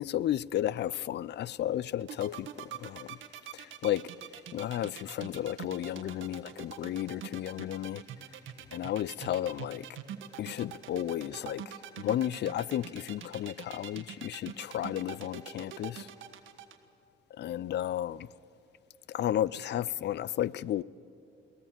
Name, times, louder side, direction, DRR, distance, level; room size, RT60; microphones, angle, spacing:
voice 1, 0.0-3.2 3.5-4.1 4.5-8.0 8.7-9.9 10.4-16.1 17.3-18.3 19.1-20.8, left 12 dB, 60° left, 0.4 m, -33 dB
sound 1, 2.0-16.8, right 9 dB, 80° right, 1.4 m, -44 dB
23.0 x 17.0 x 7.5 m
cardioid pair, 90°, 20 cm